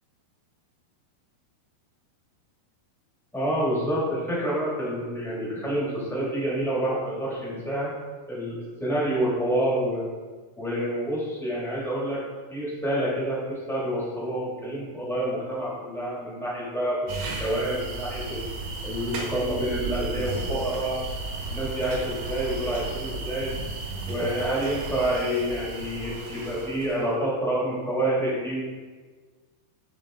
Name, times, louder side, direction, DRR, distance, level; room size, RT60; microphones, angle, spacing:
voice 1, 3.3-7.9 8.3-10.0 10.6-12.2 12.5-18.4 18.8-21.0 21.4-23.5 24.1-28.6, right 1 dB, ahead, -8 dB, 0.7 m, -28 dB
sound 1, 17.1-27.1, right 3 dB, 65° right, 2.4 m, -34 dB
10.5 x 3.9 x 3.8 m, 1.4 s
omnidirectional pair, 4.4 m